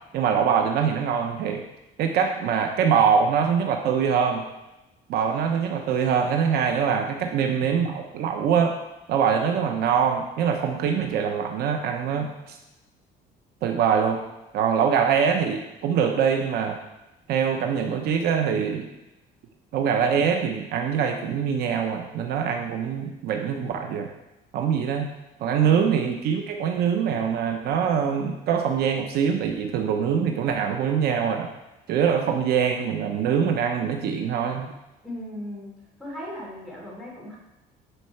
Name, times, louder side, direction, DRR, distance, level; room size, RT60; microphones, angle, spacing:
voice 1, 0.1-1.6 2.0-4.4 5.1-8.8 9.1-12.6 13.6-14.2 14.5-16.8 17.3-18.9 19.7-24.1 24.5-25.1 25.4-31.5 31.9-34.7, right 7 dB, 65° right, 4 dB, 0.8 m, -23 dB
voice 2, 35.0-35.7 36.0-37.4, left 1 dB, ahead, -6 dB, 3.0 m, -37 dB
9.9 x 4.4 x 4.4 m, 0.98 s
cardioid pair, 150°, 17 cm